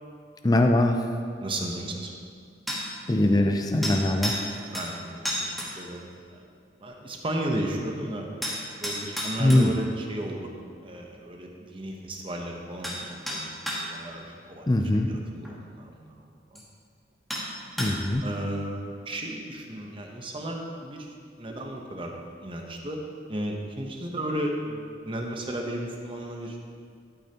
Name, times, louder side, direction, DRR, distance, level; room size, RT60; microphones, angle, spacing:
voice 1, 0.4-1.1 3.1-4.4 9.4-9.7 14.7-15.1 17.8-18.3, left 1 dB, 20° left, 4 dB, 0.4 m, -22 dB
voice 2, 1.4-2.1 4.6-6.4 6.8-8.3 8.7-10.5 10.8-16.6 18.2-21.1 21.4-22.1 22.4-23.0 23.3-26.6, right 1 dB, 30° right, 1 dB, 0.9 m, -34 dB
sound 1, 2.7-2.9 3.8-4.4 4.7-4.9 5.2-5.7 8.4-9.7 12.3-12.4 12.8-13.0 13.3-13.8 15.4-15.5 16.5-16.6 17.3-17.5 17.8-18.1, equal, ahead, 1.4 m, -31 dB
12.0 x 8.4 x 2.9 m, 2.2 s
head